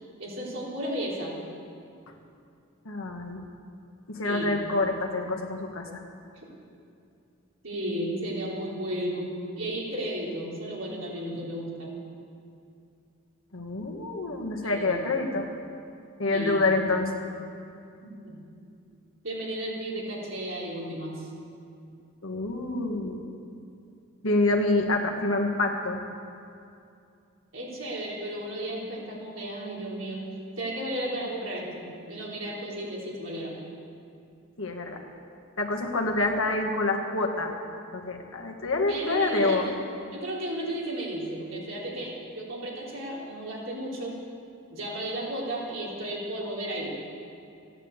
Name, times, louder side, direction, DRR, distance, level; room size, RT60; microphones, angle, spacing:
voice 1, 0.2-1.4 4.2-4.5 6.4-6.5 7.6-11.9 14.6-15.0 16.3-16.6 18.0-18.3 19.2-21.3 27.5-30.3 30.6-33.6 38.9-39.7 40.1-44.2 44.7-47.0, right 1 dB, 65° right, -4 dB, 3.8 m, -34 dB
voice 2, 2.8-3.4 4.1-5.9 13.5-15.5 16.2-17.2 22.2-23.2 24.2-26.0 34.6-35.0 35.6-37.5 37.9-39.7, left 2 dB, 75° left, 2 dB, 1.8 m, -27 dB
14.5 x 9.8 x 8.3 m, 2.5 s
head